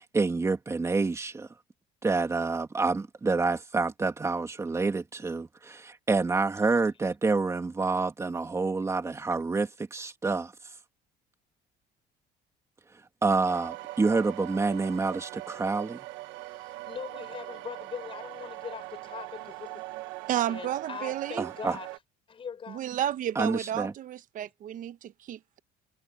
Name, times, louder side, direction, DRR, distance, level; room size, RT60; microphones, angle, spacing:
voice 1, 0.0-1.5 2.0-10.5 13.2-16.0 21.4-21.8 23.4-23.9, right 3 dB, 15° right, 2.3 m, -28 dB
sound 1, 13.5-22.0, right 18 dB, 85° right, 1.2 m, -41 dB
voice 2, 16.5-19.8 20.5-21.9 22.3-22.8 24.4-24.5, left 7 dB, 30° left, 4.9 m, -41 dB
voice 3, 20.3-21.5 22.7-25.6, right 11 dB, 45° right, 1.0 m, -32 dB
cardioid pair, 145°, 18 cm